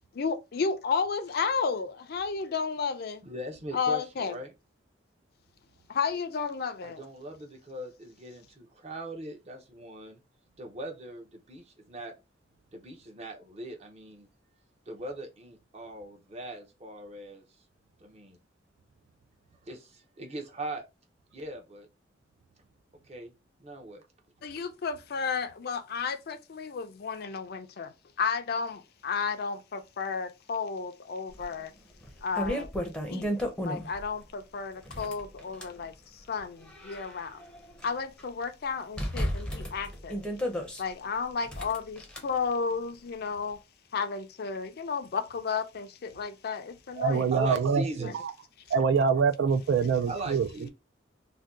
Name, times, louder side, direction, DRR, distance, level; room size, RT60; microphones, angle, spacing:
voice 1, 0.1-3.2 3.7-4.4 5.9-7.0 24.4-31.7 32.2-32.7 33.1-33.3 33.6-35.9 36.3-37.4 37.8-40.2 40.8-43.6 43.9-47.3 48.0-48.1, left 5 dB, 55° left, 0.4 m, -32 dB
voice 2, 3.2-4.5 6.8-10.2 10.6-12.1 12.7-14.3 14.9-17.4 18.0-18.4 19.7-20.8 21.3-21.9 23.1-23.3 23.6-24.0 47.3-48.3 50.1-50.7, right 1 dB, 35° right, 0.7 m, -40 dB
sound 1, 31.4-31.5 32.0-34.1 34.8-35.8 36.4-37.9 38.2-38.3 39.0-40.8 41.4-42.2, equal, 5° left, 0.6 m, -33 dB
voice 3, 47.0-48.3 48.7-50.5, right 5 dB, 70° right, 0.3 m, -25 dB
2.6 x 2.2 x 3.5 m
head